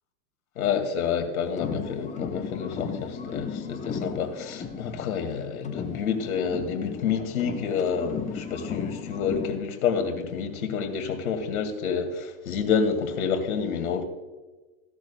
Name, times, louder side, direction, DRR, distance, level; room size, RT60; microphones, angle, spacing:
voice 1, 0.6-14.0, left 6 dB, 90° left, 2.1 m, -28 dB
sound 1, 1.5-5.4 5.6-9.6, left 6 dB, 15° left, 1.0 m, -36 dB
16.5 x 12.0 x 2.2 m
supercardioid pair, 125°, 42 cm